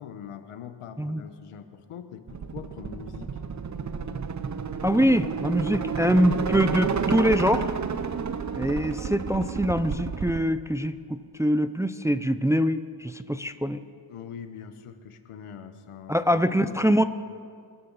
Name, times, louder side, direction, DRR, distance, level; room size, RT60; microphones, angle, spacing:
voice 1, 0.0-3.3 14.1-17.0, left 8 dB, 90° left, 8 dB, 1.2 m, -42 dB
sound 1, 2.3-10.4, right 6 dB, 35° right, 0.8 m, -30 dB
voice 2, 4.8-7.7 8.6-13.8 16.1-17.0, equal, 5° right, 11 dB, 0.4 m, -24 dB
26.5 x 12.5 x 4.1 m, 2.2 s
cardioid pair, 90°, 50 cm